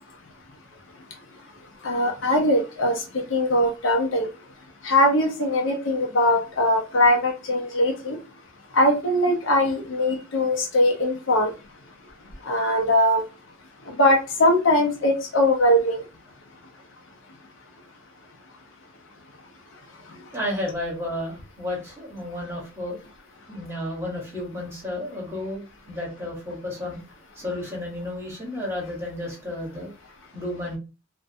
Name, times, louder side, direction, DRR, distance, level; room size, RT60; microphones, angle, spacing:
voice 1, 1.8-4.3 4.8-8.2 8.7-11.5 12.5-13.2 13.9-16.0, left 1 dB, 65° left, 1 dB, 0.6 m, -21 dB
voice 2, 20.3-23.0 23.5-27.0 27.3-29.9 30.3-30.8, left 1 dB, 10° right, -3 dB, 1.0 m, -32 dB
2.5 x 2.2 x 2.6 m, 0.30 s
head